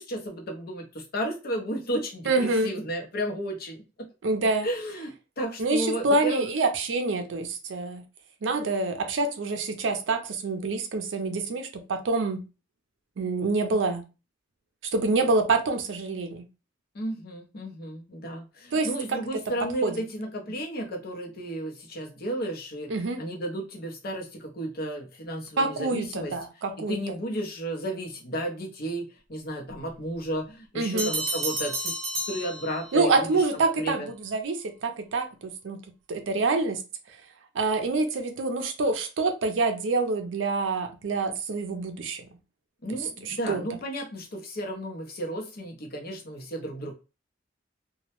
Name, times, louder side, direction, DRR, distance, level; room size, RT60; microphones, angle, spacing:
voice 1, 0.0-4.1 4.6-6.5 16.9-26.3 26.8-31.9 32.3-33.4 33.7-34.1 42.8-46.9, right 1 dB, 55° left, 0.6 m, -33 dB
voice 2, 2.3-2.7 4.2-4.7 5.6-8.0 8.4-12.4 13.2-14.0 14.9-16.4 18.7-19.2 19.8-20.0 22.9-23.2 25.6-27.0 30.8-31.1 32.9-35.8 36.1-36.8 37.5-42.3 43.2-43.6, right 3 dB, 75° right, 0.5 m, -26 dB
sound 1, 31.0-33.2, right 1 dB, 60° right, 0.9 m, -31 dB
2.2 x 2.0 x 2.9 m
head